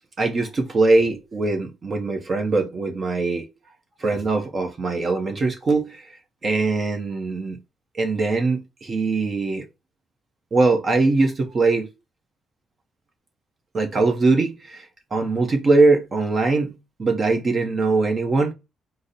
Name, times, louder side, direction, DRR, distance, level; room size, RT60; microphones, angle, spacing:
voice 1, 0.2-3.5 4.0-6.1 6.4-7.6 7.9-9.7 10.5-11.9 13.7-14.9 15.1-18.5, right 3 dB, 40° right, 0.8 m, -21 dB
4.0 x 2.1 x 3.8 m
cardioid pair, 90°, 0 cm